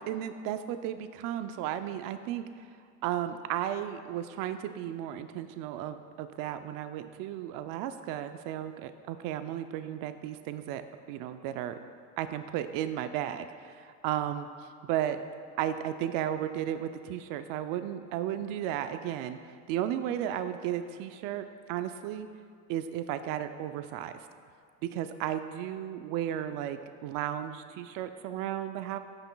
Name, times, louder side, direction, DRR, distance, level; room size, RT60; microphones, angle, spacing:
voice 1, 0.0-2.4 3.0-10.8 11.1-11.8 12.2-14.5 14.8-15.2 15.6-22.3 22.7-24.3 24.8-29.0, right 11 dB, 60° right, 9 dB, 0.5 m, -34 dB
14.0 x 6.0 x 2.2 m, 2.1 s
cardioid pair, 125°, 39 cm